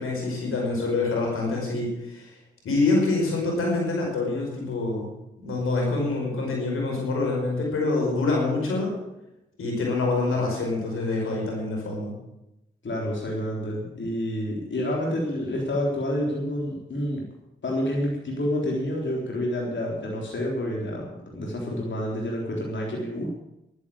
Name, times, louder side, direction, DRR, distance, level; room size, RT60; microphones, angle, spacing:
voice 1, 0.0-2.3 2.6-5.1 5.4-9.0 9.6-12.1, left 3 dB, 90° left, -1 dB, 5.3 m, -26 dB
voice 2, 12.8-17.2 17.6-23.3, equal, 60° left, -2 dB, 4.0 m, -28 dB
11.5 x 11.0 x 8.9 m, 0.89 s
cardioid pair, 45°, 21 cm